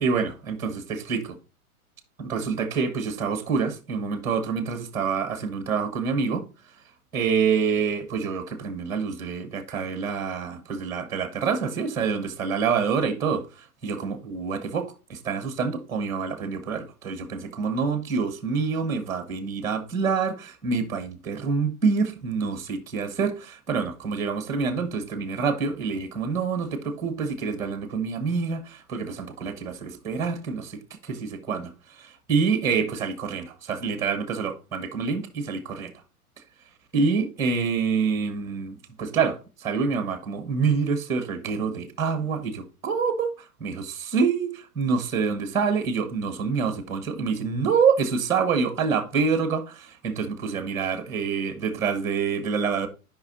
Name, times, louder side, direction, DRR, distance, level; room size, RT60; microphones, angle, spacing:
voice 1, 0.0-1.4 2.2-6.4 7.1-13.4 13.8-31.7 32.3-35.9 36.9-39.4 39.6-43.3 43.6-52.9, right 5 dB, 5° right, 1.0 m, -26 dB
11.5 x 5.5 x 2.5 m
hypercardioid pair, 150°, 44 cm